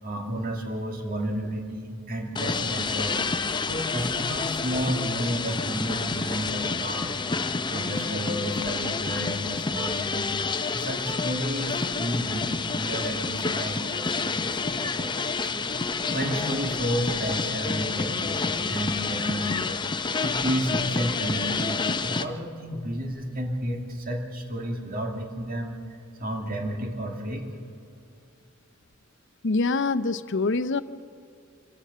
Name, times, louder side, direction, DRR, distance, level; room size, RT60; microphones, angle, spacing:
voice 1, 0.0-3.2 3.6-7.2 7.7-10.4 10.7-15.7 16.1-19.8 20.2-25.8 26.2-27.5, equal, 45° right, 2 dB, 2.5 m, -32 dB
sound 1, 2.4-22.3, left 4 dB, 20° left, 0.7 m, -29 dB
voice 2, 29.4-30.8, left 3 dB, 65° left, 12 dB, 0.7 m, -25 dB
25.5 x 15.0 x 6.9 m, 2.5 s
head